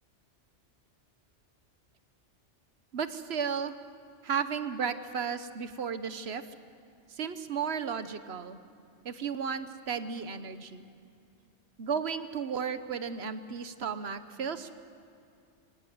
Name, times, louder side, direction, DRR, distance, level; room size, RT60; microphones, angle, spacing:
voice 1, 2.9-3.8 4.2-6.4 7.1-8.6 9.0-10.9 11.8-14.7, right 6 dB, 65° right, 11 dB, 1.3 m, -34 dB
25.0 x 18.0 x 7.9 m, 2.5 s
omnidirectional pair, 1.2 m